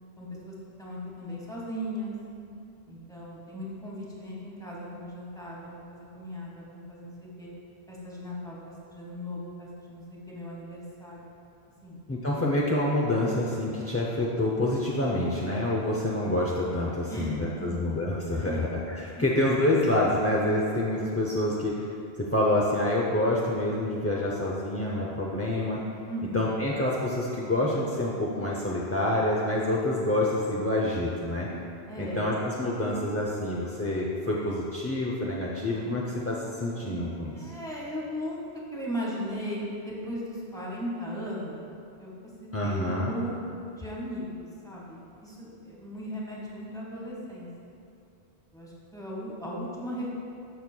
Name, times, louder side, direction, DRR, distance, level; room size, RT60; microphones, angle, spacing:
voice 1, 0.2-2.1 2.9-7.5 7.9-8.6 8.9-11.2 11.8-12.0 17.1-17.8 18.3-18.6 19.1-19.3 26.1-26.5 31.9-32.3 37.3-38.4 38.7-41.6 42.0-42.1 42.4-47.5 48.5-50.1, equal, 5° left, -5 dB, 1.5 m, -37 dB
voice 2, 12.1-21.9 22.2-25.8 26.3-31.5 32.0-37.4 42.5-43.1, left 1 dB, 20° left, -5 dB, 0.4 m, -27 dB
12.5 x 6.2 x 2.2 m, 2.6 s
omnidirectional pair, 1.1 m